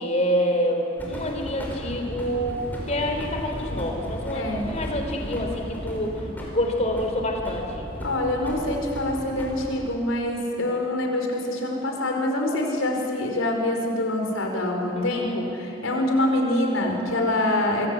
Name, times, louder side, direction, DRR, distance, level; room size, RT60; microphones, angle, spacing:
voice 1, 0.0-2.6 2.9-7.9 14.9-15.4, equal, 35° left, 3 dB, 3.8 m, -27 dB
sound 1, 1.0-9.6, equal, 10° left, 4.9 m, -35 dB
voice 2, 4.3-4.7 8.0-17.9, left 1 dB, 90° left, 2 dB, 4.7 m, -25 dB
26.0 x 21.5 x 8.6 m, 2.9 s
head